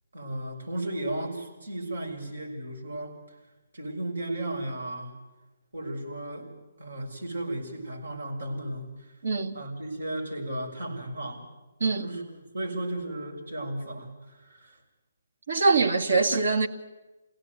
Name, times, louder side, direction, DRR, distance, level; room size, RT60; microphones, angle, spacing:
voice 1, 0.1-3.2 3.7-5.1 5.7-6.5 6.8-9.1 9.5-11.5 12.0-12.2 12.5-14.8, right 1 dB, 90° right, 6.4 m, -34 dB
voice 2, 9.2-9.6 11.8-12.1 15.5-16.7, right 4 dB, 70° right, 2.0 m, -23 dB
26.5 x 17.0 x 9.5 m
hypercardioid pair, 145°, 0 cm